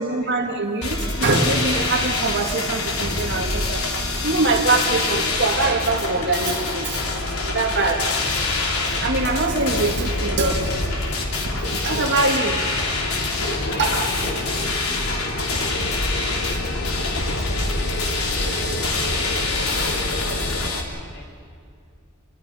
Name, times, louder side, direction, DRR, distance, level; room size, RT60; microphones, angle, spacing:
voice 1, 0.0-3.8 4.2-7.0 7.4-8.4 8.9-10.7 11.0-11.2 11.7-12.8 13.8-14.1, right 3 dB, 55° right, 3 dB, 2.0 m, -23 dB
sound 1, 0.8-20.8, left 3 dB, 85° left, 3.7 m, -26 dB
sound 2, 1.4-20.7, left 1 dB, 70° left, 2.3 m, -30 dB
voice 2, 13.6-21.4, left 1 dB, 50° left, 1 dB, 5.2 m, -41 dB
29.0 x 24.5 x 5.6 m, 2.4 s
head